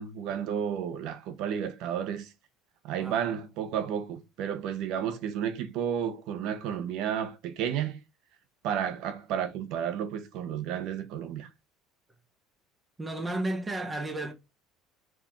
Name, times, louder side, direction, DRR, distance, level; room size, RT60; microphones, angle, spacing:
voice 1, 0.0-2.3 2.8-8.0 8.6-11.5, right 8 dB, 60° right, 1.0 m, -32 dB
voice 2, 13.0-14.3, right 2 dB, 15° right, 1.1 m, -33 dB
4.7 x 4.4 x 5.9 m
cardioid pair, 155°, 0 cm